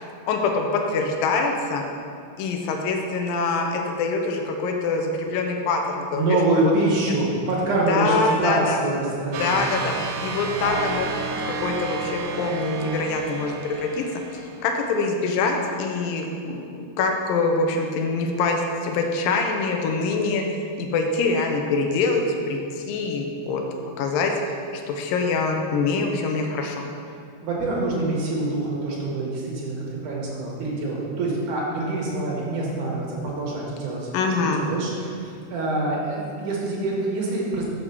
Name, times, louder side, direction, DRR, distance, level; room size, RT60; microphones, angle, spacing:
voice 1, 0.0-1.9 2.4-6.3 6.5-6.7 7.9-8.8 9.2-9.9 10.2-11.1 11.5-14.0 14.3-20.4 20.8-23.6 24.0-24.3 24.7-26.8 34.1-34.7, left 4 dB, 75° left, 2 dB, 2.2 m, -24 dB
voice 2, 6.1-9.7 27.4-37.6, right 2 dB, 60° right, -4 dB, 2.7 m, -25 dB
sound 1, 9.3-14.9, right 4 dB, 90° right, 2.9 m, -31 dB
6.6 x 6.0 x 6.7 m, 2.3 s
omnidirectional pair, 4.6 m